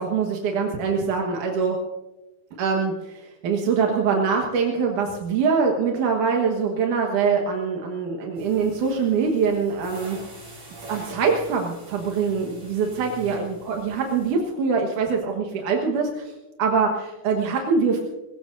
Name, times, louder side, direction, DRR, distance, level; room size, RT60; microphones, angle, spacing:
voice 1, 0.0-1.8 2.6-10.2 10.9-16.3 16.6-18.0, right 5 dB, 90° right, 0 dB, 3.0 m, -23 dB
sound 1, 8.3-14.3, right 1 dB, 40° right, 6.0 m, -43 dB
22.0 x 20.0 x 2.7 m, 1.0 s
omnidirectional pair, 3.5 m